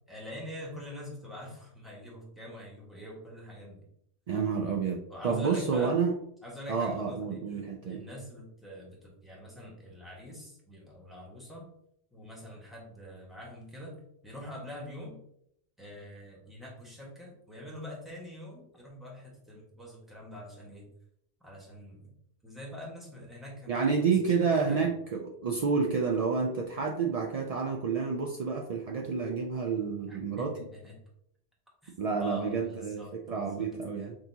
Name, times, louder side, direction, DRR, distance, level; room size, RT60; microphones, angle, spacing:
voice 1, 0.1-3.9 5.1-5.9 6.4-11.7 12.1-15.2 15.8-20.9 21.4-22.1 22.4-24.9 30.1-31.0 31.8-33.7, left 1 dB, ahead, -3 dB, 1.3 m, -45 dB
voice 2, 4.3-6.1 6.7-8.0 23.7-30.6 32.0-34.2, right 5 dB, 60° right, 1 dB, 0.4 m, -29 dB
6.1 x 2.8 x 2.7 m, 0.73 s
omnidirectional pair, 1.2 m